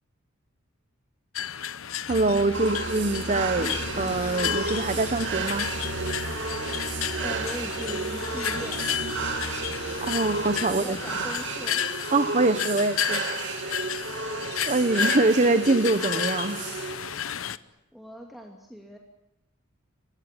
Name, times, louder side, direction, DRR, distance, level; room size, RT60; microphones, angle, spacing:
sound 1, 1.3-17.6, left 9 dB, 70° left, 0.8 m, -33 dB
voice 1, 2.1-5.7 10.0-11.0 12.1-14.0 14.7-16.7, right 2 dB, 35° right, 10 dB, 1.0 m, -24 dB
sound 2, 2.1-11.5, right 1 dB, 80° right, 6.1 m, -36 dB
sound 3, 2.5-17.2, right 4 dB, 55° right, 2.4 m, -33 dB
voice 2, 7.1-9.0 10.8-11.8 17.9-19.0, equal, ahead, 0 dB, 2.7 m, -40 dB
29.0 x 17.0 x 9.9 m, 0.89 s
head